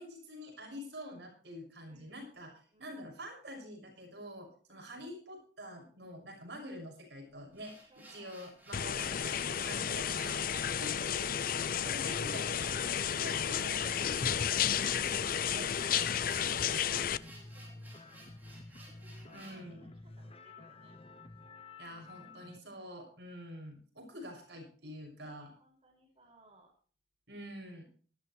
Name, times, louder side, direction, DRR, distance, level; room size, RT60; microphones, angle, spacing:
voice 1, 0.0-2.5 2.8-11.3 11.8-12.6 13.2-15.7 19.3-19.9 21.8-25.5 27.3-27.8, equal, 65° right, 2 dB, 6.3 m, -47 dB
voice 2, 1.9-3.0 7.9-8.4 14.6-18.4 18.9-21.0 25.2-26.7, right 1 dB, 30° right, -1 dB, 5.7 m, -64 dB
sound 1, 7.5-19.7, right 1 dB, 10° right, 6.0 m, -55 dB
sound 2, 8.7-17.2, left 8 dB, 50° left, 0.5 m, -32 dB
sound 3, 12.0-22.6, left 2 dB, 30° left, 0.8 m, -51 dB
18.5 x 13.5 x 3.2 m, 0.44 s
head